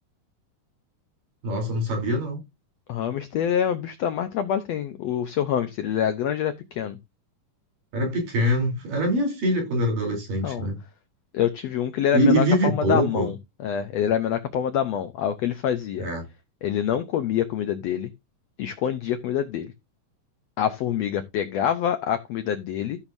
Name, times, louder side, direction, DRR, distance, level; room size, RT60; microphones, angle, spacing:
voice 1, 1.4-2.4 7.9-10.8 12.1-13.3 16.0-16.2, equal, 80° right, 5.2 m, -23 dB
voice 2, 2.9-7.0 10.4-10.7 11.3-13.4 13.6-16.1 16.6-18.1 18.6-19.7 20.6-23.0, left 9 dB, 75° left, 1.5 m, -26 dB
14.0 x 7.1 x 2.6 m
omnidirectional pair, 3.8 m